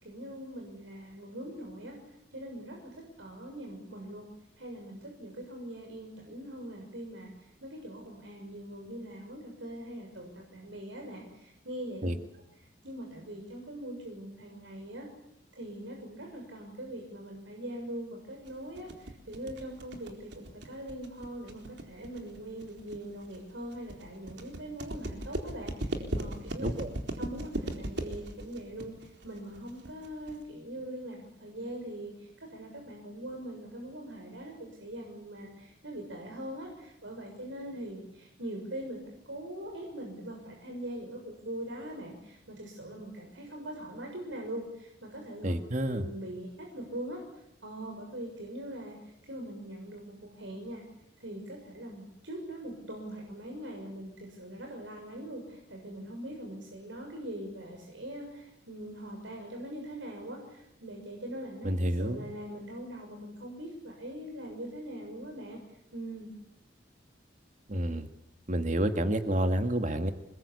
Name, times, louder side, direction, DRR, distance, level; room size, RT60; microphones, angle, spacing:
voice 1, 0.0-2.0 2.3-4.3 4.6-12.1 12.8-15.1 15.5-26.7 27.2-39.0 39.3-45.5 45.9-47.2 47.6-50.8 51.2-65.6 65.9-66.3, right 1 dB, 85° right, 1 dB, 6.6 m, -42 dB
sound 1, 18.5-30.4, right 1 dB, 65° right, 4.1 m, -38 dB
voice 2, 45.4-46.0 61.6-62.3 67.7-68.1 68.5-70.1, right 1 dB, 40° right, 7 dB, 2.1 m, -29 dB
28.5 x 21.5 x 8.6 m, 0.85 s
head